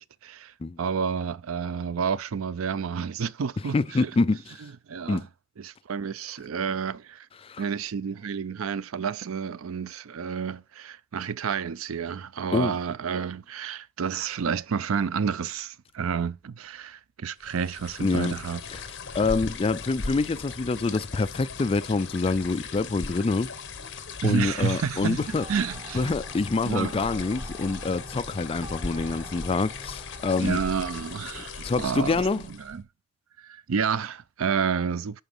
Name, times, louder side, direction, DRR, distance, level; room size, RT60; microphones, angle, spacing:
voice 1, 0.0-4.1 4.6-5.2 5.6-7.3 7.6-18.6 24.2-26.1 26.6-27.1 30.4-32.8 33.4-35.2, right 6 dB, 80° right, 0.5 m, -30 dB
voice 2, 3.7-4.4 5.1-5.2 7.4-7.6 12.5-12.8 18.0-18.3 18.7-18.8 19.1-23.5 24.2-25.4 25.9-30.6 31.6-32.4, left 3 dB, 25° left, 0.4 m, -26 dB
sound 1, 17.4-32.8, left 4 dB, 60° left, 1.2 m, -39 dB
sound 2, 25.4-32.1, right 1 dB, 20° right, 0.7 m, -46 dB
11.0 x 4.0 x 5.4 m
head